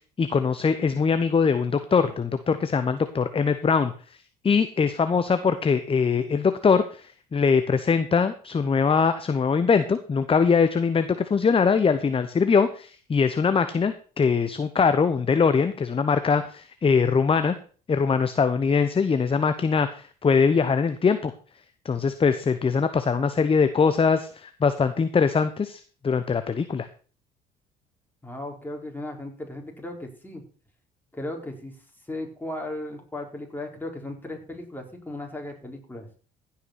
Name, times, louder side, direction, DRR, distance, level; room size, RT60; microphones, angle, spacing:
voice 1, 0.2-3.9 4.4-17.5 17.9-21.3 21.8-26.9, left 5 dB, 25° left, 11 dB, 1.0 m, -22 dB
voice 2, 28.2-30.4 31.1-31.7 32.1-36.1, left 1 dB, 10° left, 2 dB, 4.1 m, -36 dB
16.0 x 5.8 x 5.9 m, 0.41 s
hypercardioid pair, 60°, 21 cm